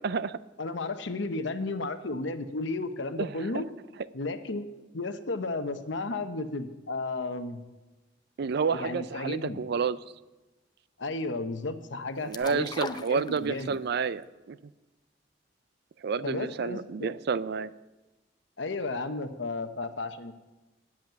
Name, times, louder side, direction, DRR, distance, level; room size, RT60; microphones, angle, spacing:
voice 1, 0.0-0.4 3.2-3.3 3.5-3.6 8.4-10.0 12.2-14.6 16.0-17.7, right 5 dB, 60° right, 17 dB, 0.4 m, -30 dB
voice 2, 0.6-3.6 4.1-4.7 4.9-7.6 8.7-9.6 11.0-13.8 16.2-17.1 18.6-20.4, left 3 dB, 75° left, 9 dB, 0.9 m, -33 dB
sound 1, 12.3-13.9 14.2-14.3, left 3 dB, 25° left, 0.5 m, -38 dB
10.5 x 7.4 x 9.0 m, 1.1 s
head